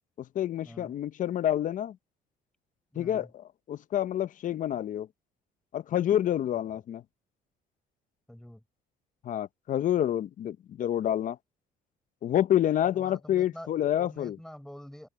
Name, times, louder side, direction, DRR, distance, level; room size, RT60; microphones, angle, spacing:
voice 1, 0.2-2.0 3.0-5.1 5.7-7.0 9.2-11.4 12.2-14.4, left 11 dB, 50° left, 0.7 m, -28 dB
voice 2, 2.9-3.3 6.5-6.6 8.3-8.6 12.9-15.1, equal, 5° left, 5.6 m, -47 dB
open air
cardioid pair, 110°, 17 cm